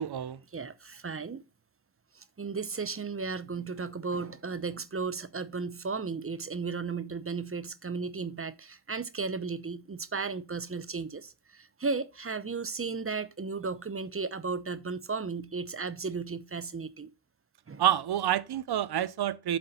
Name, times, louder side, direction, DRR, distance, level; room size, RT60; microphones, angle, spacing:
voice 1, 0.0-0.4 17.8-19.6, right 10 dB, 70° right, 0.6 m, -28 dB
voice 2, 0.5-1.4 2.1-17.1 17.7-17.8, right 4 dB, 35° right, 0.7 m, -35 dB
7.8 x 3.8 x 5.7 m
cardioid pair, 45°, 40 cm